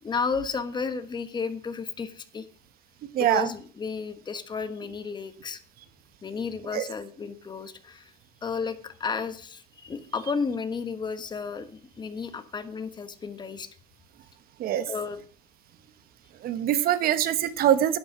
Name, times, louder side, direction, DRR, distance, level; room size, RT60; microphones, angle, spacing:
voice 1, 0.0-2.4 3.2-5.6 6.2-8.1 8.4-13.7 14.9-15.2, left 5 dB, 20° left, 10 dB, 1.3 m, -33 dB
voice 2, 3.1-3.5 6.7-6.8 14.6-14.8 16.4-18.0, right 11 dB, 50° right, 14 dB, 1.0 m, -23 dB
11.5 x 11.0 x 6.0 m, 0.43 s
cardioid pair, 145°, 19 cm